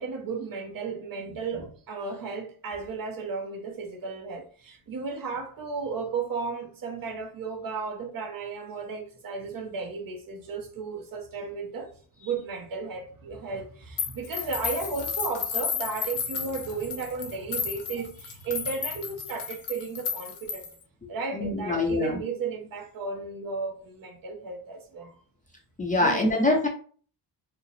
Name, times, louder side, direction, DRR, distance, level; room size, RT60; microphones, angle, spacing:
voice 1, 0.0-11.9 12.2-20.7 21.1-25.1 26.0-26.6, right 4 dB, 50° right, 0.8 m, -34 dB
sound 1, 14.0-20.8, left 7 dB, 65° left, 1.0 m, -33 dB
voice 2, 21.3-22.2 25.8-26.7, left 2 dB, 20° left, 0.5 m, -24 dB
4.7 x 2.0 x 3.1 m
wide cardioid pair, 165°, 43 cm